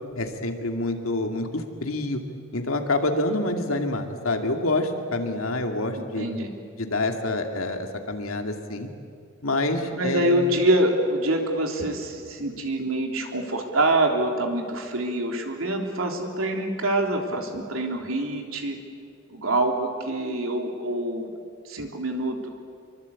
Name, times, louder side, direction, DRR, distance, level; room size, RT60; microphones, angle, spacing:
voice 1, 0.1-2.2 2.5-6.3 6.8-8.9 9.4-10.5, left 2 dB, 80° left, 4 dB, 2.5 m, -27 dB
voice 2, 6.0-6.5 9.9-18.8 19.3-21.3 21.6-22.5, right 1 dB, 75° right, 3 dB, 3.5 m, -25 dB
25.5 x 23.5 x 8.5 m, 2.4 s
head